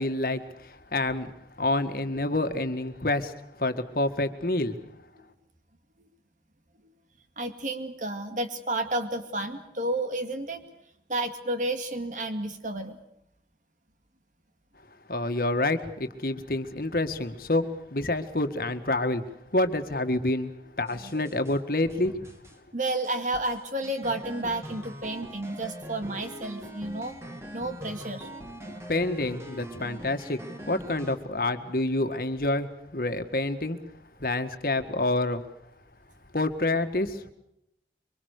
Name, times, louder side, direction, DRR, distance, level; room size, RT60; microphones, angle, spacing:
voice 1, 0.0-4.8 15.1-22.3 28.9-33.8 34.2-35.4 36.3-37.2, left 2 dB, 55° left, 8 dB, 1.9 m, -28 dB
voice 2, 7.4-10.6 11.1-13.0 21.0-21.3 22.7-27.2 27.5-28.3, right 2 dB, 45° right, 6 dB, 2.2 m, -31 dB
sound 1, 20.9-21.6 21.9-22.6 22.8-31.2, equal, 15° right, 2.9 m, -42 dB
25.0 x 24.5 x 6.7 m, 0.80 s
head